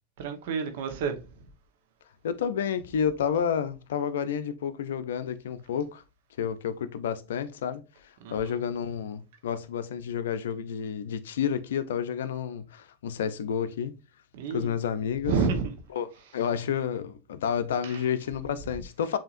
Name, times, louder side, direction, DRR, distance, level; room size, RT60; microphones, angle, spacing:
voice 1, 0.2-1.2 8.2-8.5 14.3-14.7 15.3-15.7 17.8-18.0, right 5 dB, 70° right, 1.1 m, -29 dB
voice 2, 2.2-6.0 6.4-7.8 8.3-13.9 14.5-15.3 15.9-16.1 16.3-19.2, left 8 dB, 85° left, 0.5 m, -30 dB
7.3 x 2.8 x 2.5 m
hypercardioid pair, 110°, 0 cm